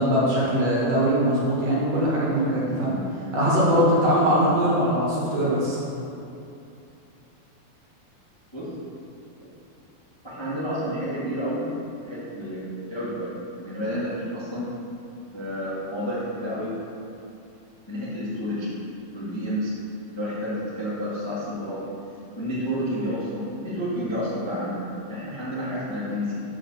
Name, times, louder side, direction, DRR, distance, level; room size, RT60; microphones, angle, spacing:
voice 1, 0.0-3.0 3.3-5.8, equal, 55° right, -6 dB, 2.1 m, -21 dB
voice 2, 10.2-11.7 12.0-13.4 13.6-14.7 15.3-16.7 17.9-18.7 19.1-19.7 20.1-21.8 22.4-26.4, equal, 25° left, -10 dB, 0.5 m, -30 dB
6.6 x 5.1 x 5.9 m, 2.7 s
omnidirectional pair, 4.0 m